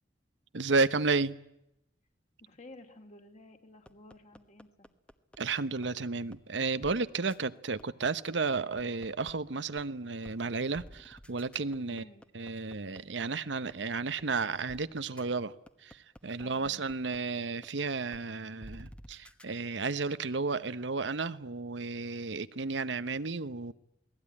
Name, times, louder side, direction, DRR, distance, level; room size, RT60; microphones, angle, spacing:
voice 1, 0.5-1.4 5.4-12.0 12.3-15.5 15.8-23.7, right 4 dB, 80° right, 0.9 m, -32 dB
voice 2, 2.4-4.9 11.9-12.3 16.4-17.0, left 2 dB, 40° left, 3.3 m, -53 dB
sound 1, 3.9-5.4 5.8-5.9 6.3-6.4 6.8-6.9 7.3-7.4 7.8-9.3 9.8-9.9 10.2-10.4 10.7-13.2 13.7-13.8 14.2-14.3 14.7-14.8 15.2-15.3 15.7-17.2 17.6-17.7 18.1-18.2 18.6-19.4, equal, 5° left, 1.1 m, -50 dB
28.5 x 19.5 x 9.9 m
head